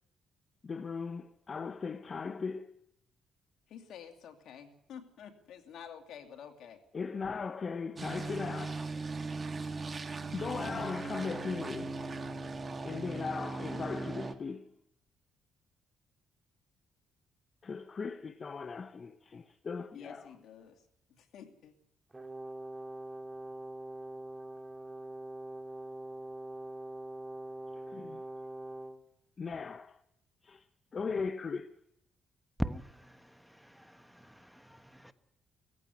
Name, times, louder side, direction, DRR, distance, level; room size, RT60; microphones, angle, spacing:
voice 1, 0.6-2.7 6.9-8.9 10.3-12.0 12.8-14.7 17.6-20.3 27.7-28.2 29.4-30.0 30.4-30.7 30.9-31.7, left 5 dB, 40° left, 0.8 m, -38 dB
voice 2, 3.7-6.8 19.9-20.8 21.2-21.7, left 8 dB, 75° left, 2.5 m, -50 dB
sound 1, 8.0-14.3, right 3 dB, 30° right, 1.7 m, -38 dB
Brass instrument, 22.1-29.0, right 1 dB, 15° right, 2.3 m, -43 dB
voice 3, 32.6-35.1, equal, ahead, 1.2 m, -41 dB
18.0 x 15.0 x 9.8 m
cardioid pair, 90°, 0 cm